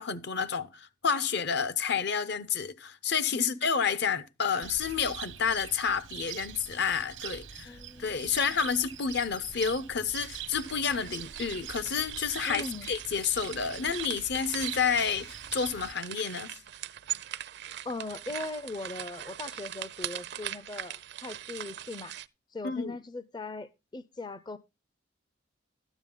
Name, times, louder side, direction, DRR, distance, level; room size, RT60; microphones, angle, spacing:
voice 1, 0.0-16.5 22.6-23.0, left 6 dB, 60° left, 0.8 m, -30 dB
Cricket, 4.6-15.9, right 9 dB, 90° right, 1.0 m, -43 dB
sound 1, 7.5-12.7, left 1 dB, 90° left, 3.8 m, -60 dB
voice 2, 7.7-8.2 12.5-12.9 17.8-22.1 22.5-24.6, left 2 dB, 20° left, 0.5 m, -39 dB
sound 2, 10.2-22.3, right 12 dB, 60° right, 0.5 m, -41 dB
12.5 x 9.0 x 3.7 m
head